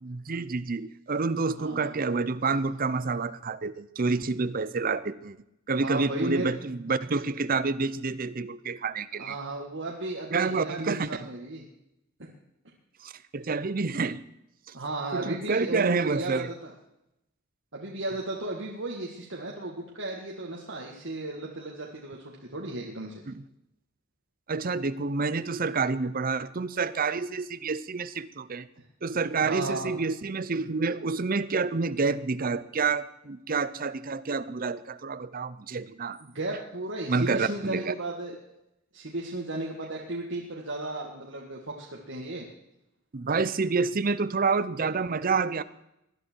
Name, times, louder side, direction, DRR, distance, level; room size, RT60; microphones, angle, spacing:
voice 1, 0.0-5.4 5.7-9.4 10.3-11.3 13.0-14.2 15.1-16.5 23.3-23.4 24.5-28.7 29.0-36.2 37.1-37.9 43.1-45.6, right 4 dB, 45° right, 14 dB, 0.6 m, -28 dB
voice 2, 1.6-1.9 5.7-6.5 9.2-11.6 14.7-16.7 17.7-23.2 29.4-29.9 36.2-38.3 38.9-42.5, right 2 dB, 60° right, -2 dB, 1.9 m, -35 dB
19.5 x 11.5 x 4.6 m, 0.84 s
head